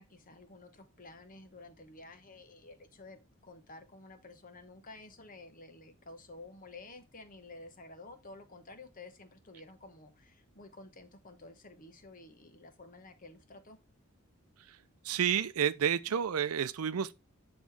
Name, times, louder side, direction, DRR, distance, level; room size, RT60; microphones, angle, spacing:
voice 1, 0.0-13.8, left 2 dB, 40° left, 1.0 m, -52 dB
voice 2, 15.0-17.1, right 8 dB, 85° right, 0.5 m, -30 dB
8.2 x 3.1 x 4.7 m
head